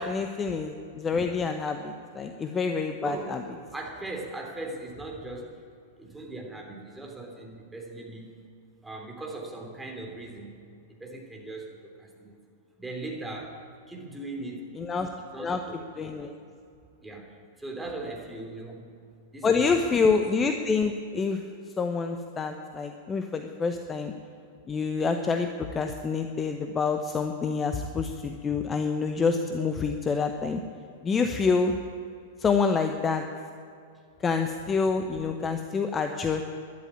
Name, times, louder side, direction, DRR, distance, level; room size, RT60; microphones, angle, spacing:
voice 1, 0.0-3.4 14.8-15.1 15.4-15.6 16.0-16.3 19.4-21.4 21.8-24.1 24.7-30.6 31.0-31.8 32.4-33.2 34.2-36.4, left 5 dB, 20° left, 6 dB, 0.9 m, -27 dB
voice 2, 2.9-3.3 3.7-5.7 6.0-8.4 8.8-10.6 11.0-12.4 12.8-14.7 15.2-16.3 17.0-18.9 19.3-19.8, right 2 dB, 5° right, 0 dB, 3.2 m, -39 dB
12.5 x 11.0 x 9.8 m, 2.5 s
figure-of-eight pair, 100°, 0 cm